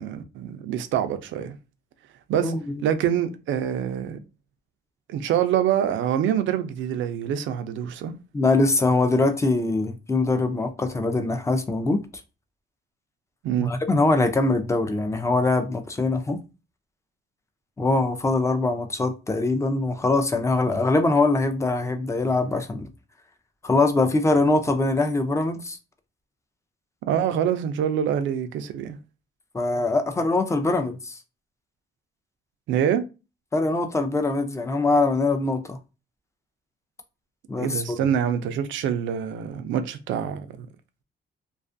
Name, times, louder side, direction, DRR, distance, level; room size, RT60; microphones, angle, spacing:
voice 1, 0.0-1.6 2.3-2.5 2.8-4.2 5.1-8.1 13.4-13.7 27.1-29.0 32.7-33.1 37.6-40.7, right 9 dB, 75° right, 0.4 m, -25 dB
voice 2, 2.4-2.8 8.3-12.0 13.6-16.4 17.8-22.9 23.6-25.8 29.5-31.2 33.5-35.8 37.5-38.0, left 2 dB, 15° left, 0.4 m, -23 dB
2.5 x 2.3 x 2.5 m
cardioid pair, 90°, 20 cm